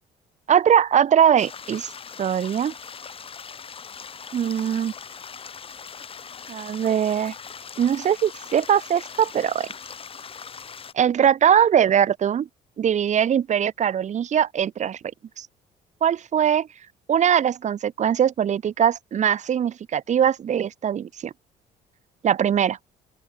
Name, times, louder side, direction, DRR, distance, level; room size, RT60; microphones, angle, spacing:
voice 1, 0.5-1.9 2.2-2.7 4.3-4.9 6.5-7.3 7.8-9.7 10.9-12.5 12.8-15.0 15.4-15.5 16.0-16.7 17.1-21.3 22.2-22.8, right 9 dB, 45° right, 1.4 m, -21 dB
sound 1, 1.4-10.9, left 6 dB, 35° left, 2.1 m, -40 dB
open air
cardioid pair, 110°, 17 cm